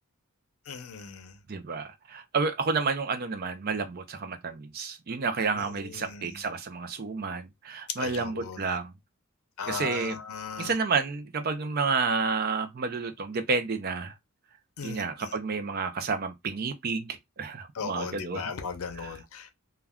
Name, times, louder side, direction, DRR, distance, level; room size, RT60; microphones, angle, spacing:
voice 1, 0.7-1.3 6.0-6.2 8.0-8.6 9.6-10.7 14.8-15.3 17.8-19.5, left 6 dB, 80° left, 0.6 m, -37 dB
voice 2, 1.5-8.9 9.7-10.2 10.6-14.1 14.8-18.5 18.9-19.1, right 4 dB, 45° right, 0.4 m, -30 dB
2.3 x 2.2 x 3.4 m
head